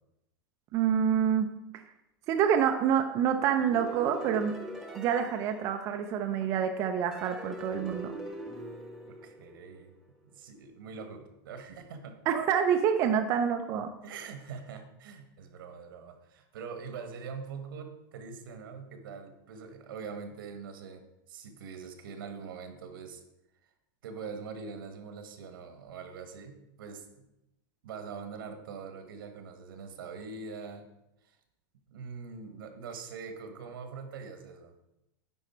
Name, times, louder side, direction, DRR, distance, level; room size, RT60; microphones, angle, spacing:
voice 1, 0.7-1.5 1.7-1.8 2.3-4.5 4.9-8.1 12.3-13.9, right 8 dB, 25° right, 6 dB, 0.4 m, -27 dB
sound 1, 3.6-6.4 7.1-9.9, right 1 dB, ahead, 0.9 m, -43 dB
voice 2, 9.1-9.9 10.2-12.2 14.0-21.0 21.3-23.2 24.0-27.3 27.8-30.8 31.9-34.7, right 5 dB, 75° right, 6 dB, 1.4 m, -43 dB
9.8 x 4.3 x 4.4 m, 0.88 s
supercardioid pair, 170°, 12 cm